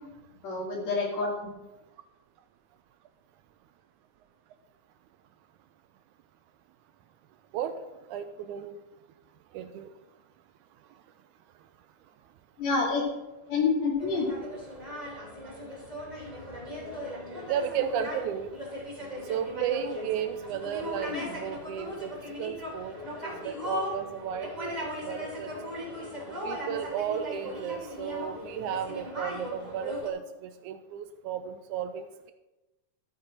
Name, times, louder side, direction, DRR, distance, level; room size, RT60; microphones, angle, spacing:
voice 1, 0.4-1.3 12.6-13.0 13.5-14.3 21.1-21.3, left 4 dB, 55° left, -1 dB, 3.5 m, -27 dB
voice 2, 8.1-8.8 9.5-9.9 17.5-18.5 19.2-22.1 22.4-23.0 23.2-25.5 26.4-32.3, right 9 dB, 80° right, 10 dB, 2.0 m, -34 dB
sound 1, 14.0-30.1, left 1 dB, 15° right, 2.9 m, -38 dB
13.0 x 8.7 x 4.4 m, 1.0 s
omnidirectional pair, 3.7 m